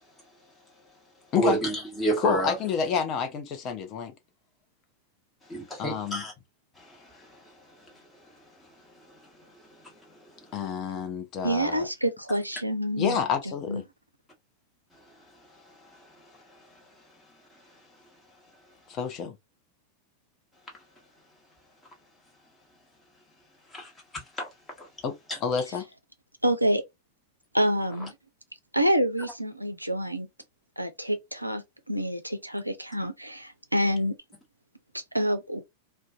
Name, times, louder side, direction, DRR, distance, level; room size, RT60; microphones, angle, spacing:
voice 1, 1.3-2.6 5.5-6.3 6.8-7.3 7.8-7.9 23.7-24.5 24.8-24.9 25.3-25.4, right 2 dB, 10° left, 1.1 m, -30 dB
voice 2, 2.2-4.1 5.8-6.2 10.5-11.9 13.0-13.8 18.9-19.3 25.0-25.1 25.4-25.8, left 7 dB, 35° left, 0.5 m, -28 dB
voice 3, 11.4-13.2 13.4-13.8 26.4-26.8 27.5-28.1 28.7-30.3 30.8-34.1 34.9-35.6, equal, 90° right, 0.3 m, -27 dB
2.5 x 2.1 x 2.3 m
figure-of-eight pair, 90°, 0 cm